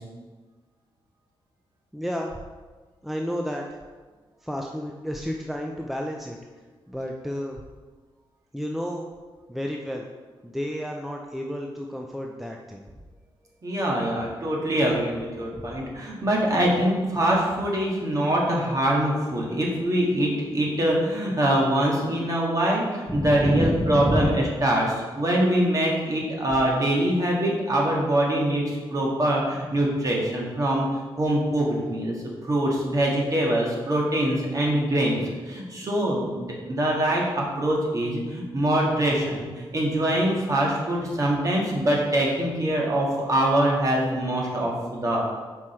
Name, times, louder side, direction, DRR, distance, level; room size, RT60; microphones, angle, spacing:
voice 1, 1.9-2.3 3.0-3.7 4.4-6.4 6.9-7.6 8.5-9.1 9.5-10.1 10.4-12.9 15.6-15.8 23.1-24.5, equal, ahead, 1 dB, 0.4 m, -30 dB
voice 2, 13.6-32.1 32.4-45.3, right 1 dB, 40° right, -3 dB, 1.7 m, -24 dB
6.1 x 4.9 x 4.3 m, 1.4 s
wide cardioid pair, 110°, 9 cm